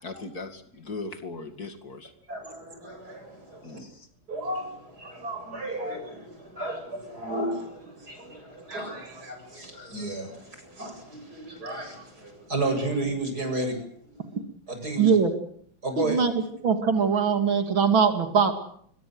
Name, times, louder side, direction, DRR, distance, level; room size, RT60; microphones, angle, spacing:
voice 1, 0.0-2.1 3.6-4.1, left 3 dB, 50° left, 7 dB, 2.8 m, -38 dB
voice 2, 2.3-3.8 4.3-14.2 14.7-15.2 15.8-16.2, right 2 dB, 50° right, 6 dB, 8.3 m, -33 dB
voice 3, 15.0-15.3 16.0-16.3 16.6-18.5, right 6 dB, 90° right, 6 dB, 3.4 m, -21 dB
25.5 x 22.5 x 7.8 m, 0.64 s
omnidirectional pair, 2.1 m